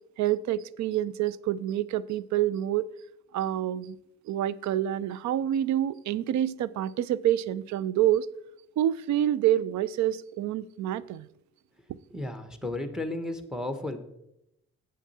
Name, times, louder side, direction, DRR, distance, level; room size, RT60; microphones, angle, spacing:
voice 1, 0.2-2.9 3.3-4.0 4.3-8.3 8.8-11.3, right 12 dB, 70° right, 0.4 m, -27 dB
voice 2, 12.1-14.0, left 2 dB, ahead, 1.0 m, -33 dB
8.5 x 7.2 x 4.2 m
cardioid pair, 90°, 30 cm